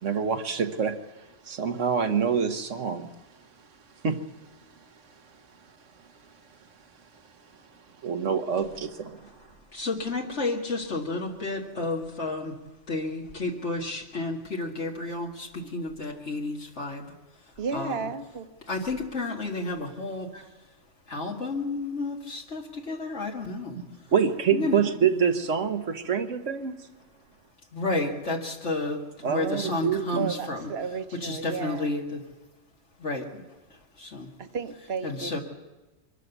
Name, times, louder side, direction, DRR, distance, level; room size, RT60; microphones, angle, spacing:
voice 1, 0.0-1.0 1.4-3.1 4.0-4.2 8.0-9.3 20.3-20.4 24.1-26.7 29.2-30.3, right 7 dB, 80° right, 8 dB, 1.6 m, -26 dB
voice 2, 9.7-12.5 12.9-17.1 17.7-18.0 18.7-20.3 21.1-23.8 24.5-24.8 27.7-30.7 31.1-32.2 33.0-33.4 34.0-34.3 35.0-35.4, left 2 dB, 70° left, 0 dB, 2.2 m, -31 dB
voice 3, 17.6-18.5 30.1-31.9 34.5-35.3, right 5 dB, 55° right, 9 dB, 1.5 m, -33 dB
24.0 x 13.5 x 8.2 m, 1.2 s
omnidirectional pair, 1.3 m